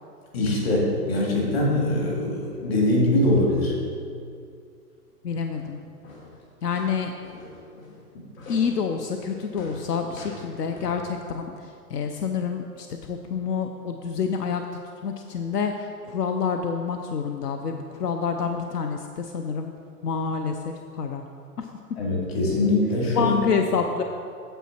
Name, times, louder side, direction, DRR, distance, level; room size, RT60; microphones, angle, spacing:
voice 1, 0.3-3.7 22.0-23.4, left 1 dB, 40° left, -2 dB, 2.0 m, -22 dB
voice 2, 5.2-5.8 6.6-7.1 8.5-11.5 11.9-14.6 15.0-19.7 20.0-21.2 21.6-21.7 23.1-24.0, left 6 dB, 75° left, 5 dB, 0.8 m, -27 dB
sound 1, 5.5-11.1, left 1 dB, 55° left, 2.1 m, -45 dB
9.0 x 7.2 x 4.4 m, 2.3 s
hypercardioid pair, 175°, 48 cm